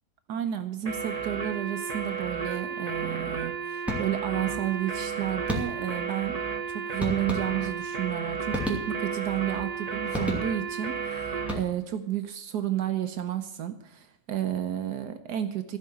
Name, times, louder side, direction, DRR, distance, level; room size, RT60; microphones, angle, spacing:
voice 1, 0.3-6.4 6.7-15.8, right 11 dB, 75° right, 8 dB, 1.4 m, -31 dB
sound 1, 0.9-11.6, right 6 dB, 25° right, 1.3 m, -33 dB
sound 2, 3.9-4.4 5.5-6.0 7.0-7.9 8.5-9.3 10.1-10.8 11.4-12.0, left 1 dB, ahead, 2.5 m, -34 dB
15.5 x 5.6 x 9.6 m, 0.80 s
omnidirectional pair, 1.8 m